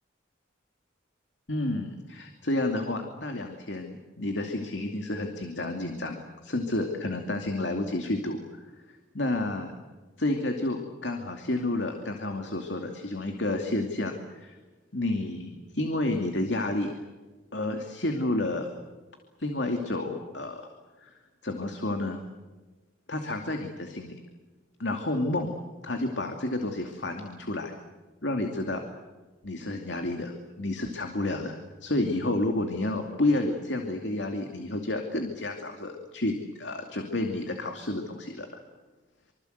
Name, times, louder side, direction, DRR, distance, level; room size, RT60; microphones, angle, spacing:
voice 1, 1.5-6.2 6.4-8.7 9.1-9.7 10.2-14.6 14.9-16.9 17.5-18.7 19.4-20.7 21.0-21.1 21.4-22.2 23.1-24.2 24.8-25.5 25.8-27.7 28.2-28.8 29.4-38.5, left 2 dB, 65° left, 4 dB, 2.6 m, -30 dB
26.0 x 25.0 x 8.1 m, 1.2 s
head